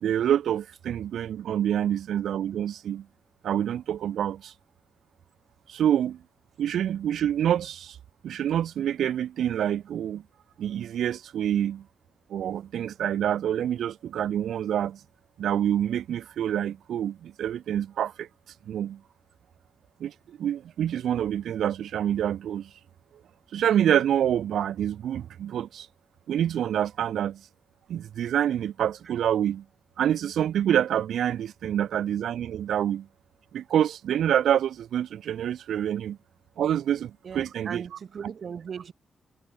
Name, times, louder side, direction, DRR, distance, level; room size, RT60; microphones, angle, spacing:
voice 1, 0.0-3.1 3.4-4.5 5.7-6.2 6.6-8.0 8.2-10.2 10.6-11.9 12.3-15.0 15.4-18.3 18.7-19.0 20.0-22.7 23.5-25.9 26.3-27.4 27.9-29.6 30.0-33.1 33.5-36.2 36.6-37.8, right 10 dB, 90° right, 0.8 m, -27 dB
voice 2, 37.2-38.9, right 7 dB, 60° right, 1.5 m, -38 dB
cardioid pair, 90°, 0 cm